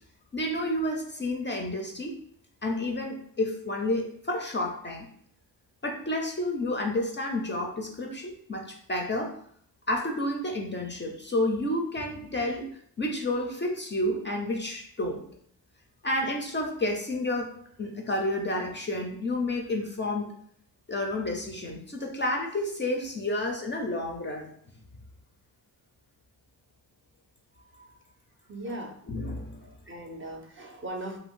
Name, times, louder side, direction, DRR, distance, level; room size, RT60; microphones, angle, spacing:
voice 1, 0.3-2.1 2.6-5.1 5.8-9.4 9.9-12.7 13.0-15.2 16.0-20.3 20.9-24.5 29.1-29.6, left 1 dB, 30° left, 1 dB, 0.4 m, -30 dB
voice 2, 28.5-29.0 29.6-31.2, right 1 dB, 30° right, 2 dB, 0.5 m, -38 dB
2.5 x 2.2 x 3.6 m, 0.63 s
cardioid pair, 70°, 42 cm